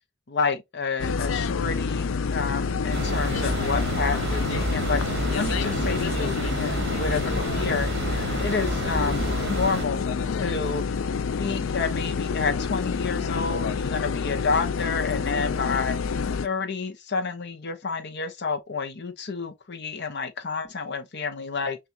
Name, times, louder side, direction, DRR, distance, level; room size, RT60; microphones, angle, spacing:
voice 1, 0.3-7.9 8.4-10.1 10.4-11.0 11.4-16.0 16.4-21.8, left 4 dB, 60° left, 0.8 m, -29 dB
sound 1, 1.0-16.5, left 5 dB, 85° left, 0.4 m, -28 dB
sound 2, 2.9-9.9, right 3 dB, 60° right, 0.9 m, -30 dB
5.8 x 2.5 x 2.7 m
head